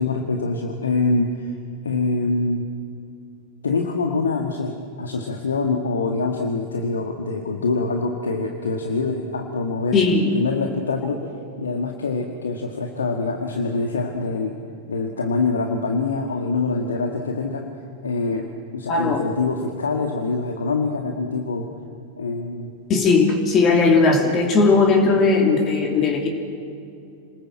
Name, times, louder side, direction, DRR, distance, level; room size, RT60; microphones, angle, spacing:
voice 1, 0.0-1.6 1.8-2.7 3.6-10.0 10.3-11.2 11.6-14.6 14.9-17.7 18.0-18.5 18.7-21.7 22.2-22.7, left 3 dB, 70° left, 3 dB, 1.8 m, -24 dB
voice 2, 9.9-10.3 18.9-19.2 22.9-26.3, left 4 dB, 30° left, 3 dB, 2.8 m, -17 dB
28.0 x 20.5 x 7.6 m, 2.4 s
figure-of-eight pair, 90°, 0 cm